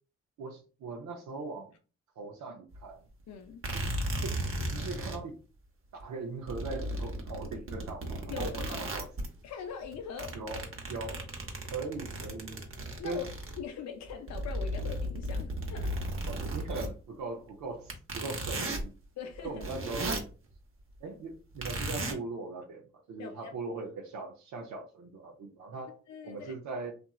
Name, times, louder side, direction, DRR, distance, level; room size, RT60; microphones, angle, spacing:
voice 1, 0.4-1.7 2.2-3.0 3.7-4.3 4.7-5.4 5.9-9.1 10.3-10.6 10.9-11.2 11.7-12.6 13.0-13.2 16.3-18.9 19.4-20.2 21.0-22.8 23.1-26.0 26.2-26.9, right 3 dB, 75° right, 0.5 m, -40 dB
sound 1, 2.7-2.8 3.6-5.2 6.0-6.1 6.5-9.4 9.8-13.6 14.1-16.9 17.9-18.9 19.3-20.3 21.6-22.1, right 1 dB, 45° right, 0.9 m, -35 dB
voice 2, 3.3-3.7 8.3-8.8 9.4-10.4 13.0-13.3 13.6-16.0 19.2-19.6 23.2-23.9 26.1-26.5, left 7 dB, 65° left, 0.5 m, -42 dB
2.9 x 2.4 x 2.3 m
supercardioid pair, 50°, 29 cm